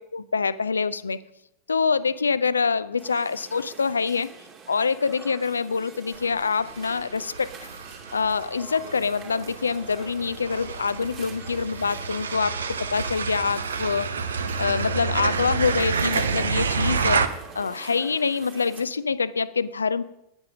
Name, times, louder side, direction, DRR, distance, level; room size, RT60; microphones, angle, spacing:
voice 1, 0.1-1.2 1.7-4.3 4.7-7.7 8.1-14.1 14.6-17.2 17.5-20.0, left 5 dB, 75° left, 17 dB, 0.4 m, -25 dB
sound 1, 3.0-18.8, right 5 dB, 30° right, 2.7 m, -45 dB
sound 2, 6.1-17.3, right 5 dB, 70° right, 0.7 m, -29 dB
9.7 x 8.9 x 6.0 m, 0.85 s
figure-of-eight pair, 90°, 0 cm